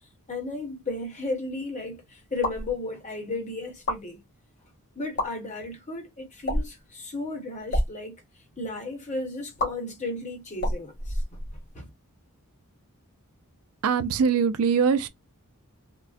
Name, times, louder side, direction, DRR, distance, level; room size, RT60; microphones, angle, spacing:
voice 1, 0.3-4.2 5.0-8.1 8.6-11.4 11.7-11.9, left 2 dB, 30° left, 1.0 m, -34 dB
sound 1, 2.3-2.7 3.7-4.0 5.0-5.3 6.4-6.8 7.6-7.9 9.6-9.7 10.6-11.7, left 1 dB, 55° left, 1.5 m, -28 dB
voice 2, 13.8-15.1, right 6 dB, 70° right, 0.4 m, -22 dB
3.7 x 2.0 x 2.4 m
head